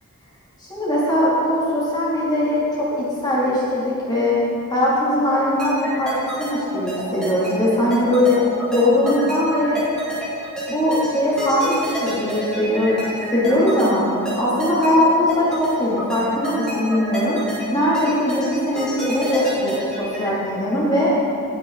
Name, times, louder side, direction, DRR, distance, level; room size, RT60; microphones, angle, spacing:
voice 1, 0.7-4.4 4.7-8.4 8.7-9.9 10.7-14.0 14.4-17.4 17.7-21.1, left 1 dB, 20° left, -7 dB, 2.8 m, -20 dB
sound 1, 5.6-20.3, equal, 5° left, 3.0 m, -29 dB
15.5 x 7.5 x 4.0 m, 2.5 s
head